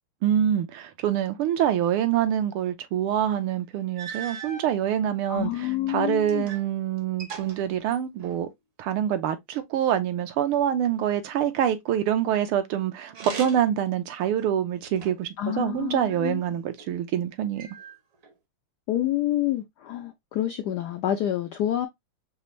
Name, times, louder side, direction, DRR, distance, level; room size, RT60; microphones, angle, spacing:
voice 1, 0.2-8.5 8.8-17.7, right 10 dB, 80° right, 1.7 m, -26 dB
sound 1, 3.4-3.5 3.9-4.7 5.5-6.7 7.0-8.5 13.1-13.8 14.4-15.4 16.1-16.9 17.6-18.3, right 6 dB, 55° right, 1.0 m, -41 dB
voice 2, 5.3-6.5 15.4-16.4 18.9-21.9, left 12 dB, 80° left, 0.9 m, -28 dB
5.4 x 2.5 x 3.0 m
omnidirectional pair, 2.4 m